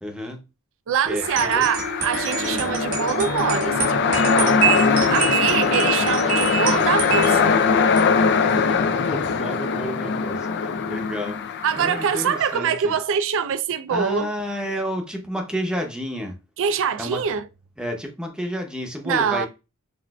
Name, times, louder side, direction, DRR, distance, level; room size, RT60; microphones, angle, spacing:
voice 1, 0.0-0.4 1.1-1.7 2.4-2.7 8.4-12.9 13.9-16.4 17.0-17.2 17.8-19.5, equal, 5° right, 0.7 m, -31 dB
voice 2, 0.9-7.5 11.6-14.3 16.6-17.5 19.0-19.5, right 7 dB, 60° right, 0.4 m, -24 dB
sound 1, 1.1-9.4, right 7 dB, 80° right, 1.8 m, -27 dB
sound 2, 1.2-12.6, left 5 dB, 50° left, 0.4 m, -22 dB
6.0 x 2.5 x 2.3 m
head